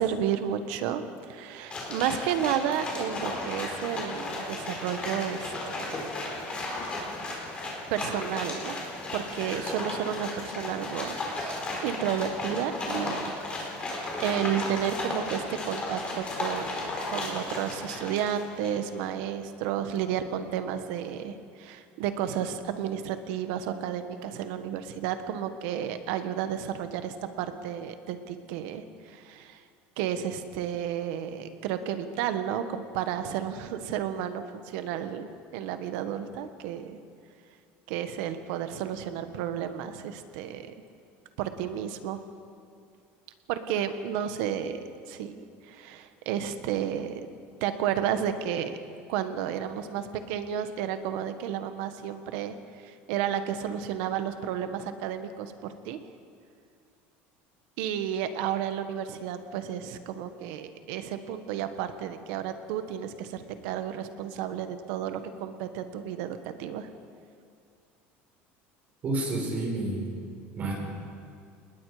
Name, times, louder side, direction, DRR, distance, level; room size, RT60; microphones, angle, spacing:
voice 1, 0.0-6.2 7.9-8.8 9.1-13.3 13.7-16.8 17.1-29.6 30.0-37.0 37.9-40.7 41.4-42.2 43.5-44.8 45.1-47.2 47.6-48.8 49.1-56.0 57.8-66.9, right 9 dB, 70° right, 9 dB, 1.5 m, -32 dB
sound 1, 1.7-18.9, left 2 dB, 20° left, 4.0 m, -34 dB
voice 2, 69.0-70.1 70.6-70.7, right 2 dB, 30° right, -1 dB, 5.0 m, -29 dB
29.0 x 20.0 x 5.1 m, 2.3 s
cardioid pair, 170°, 5 cm